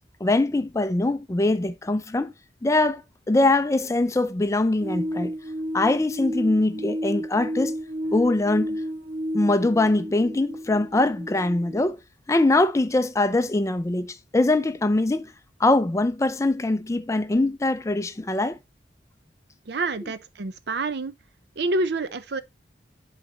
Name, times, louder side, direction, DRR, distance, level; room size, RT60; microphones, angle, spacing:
voice 1, 0.2-2.3 2.6-3.0 3.3-5.3 5.7-7.8 8.1-8.8 9.3-12.0 12.3-15.3 15.6-18.6 20.0-20.1, left 2 dB, 15° left, 0.4 m, -22 dB
sound 1, 4.8-11.9, equal, 45° right, 1.4 m, -32 dB
voice 2, 19.7-21.1 21.6-22.4, right 2 dB, 65° right, 0.6 m, -27 dB
10.5 x 4.1 x 2.8 m
head